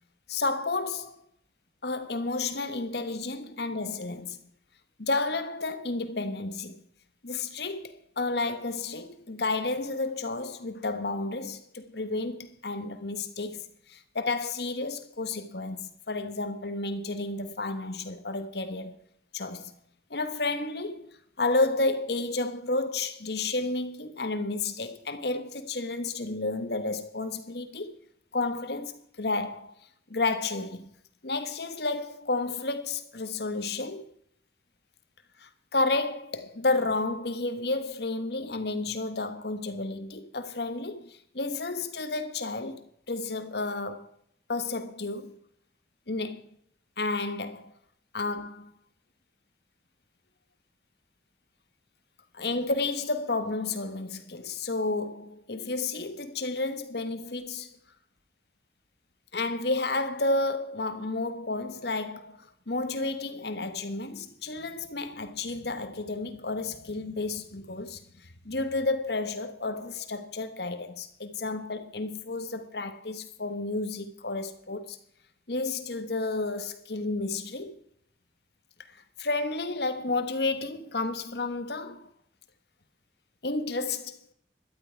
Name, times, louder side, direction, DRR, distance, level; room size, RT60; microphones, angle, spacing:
voice 1, 0.3-1.2 1.8-4.4 5.0-6.8 7.2-19.0 19.3-19.7 20.1-21.1 21.4-28.0 28.3-29.7 30.1-30.9 31.2-34.1 35.4-44.1 44.5-45.4 46.1-46.5 47.0-47.7 48.1-48.7 52.3-57.8 59.3-75.0 75.5-77.8 79.2-82.1 83.4-84.2, left 3 dB, 65° left, 1.4 m, -31 dB
12.5 x 12.0 x 4.6 m
head